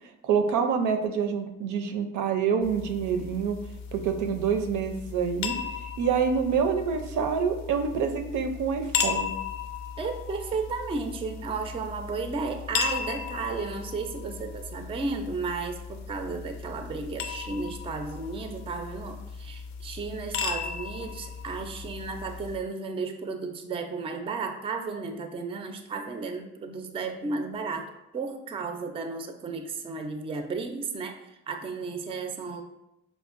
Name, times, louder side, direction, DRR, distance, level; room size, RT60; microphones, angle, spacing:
voice 1, 0.2-3.6 3.9-5.5 6.0-9.3, right 6 dB, 80° right, 6 dB, 0.5 m, -26 dB
sound 1, 2.6-22.6, left 6 dB, 65° left, 0.4 m, -36 dB
voice 2, 10.0-32.6, right 4 dB, 20° right, 6 dB, 0.3 m, -34 dB
4.8 x 2.1 x 2.4 m, 0.88 s
cardioid pair, 90°, 30 cm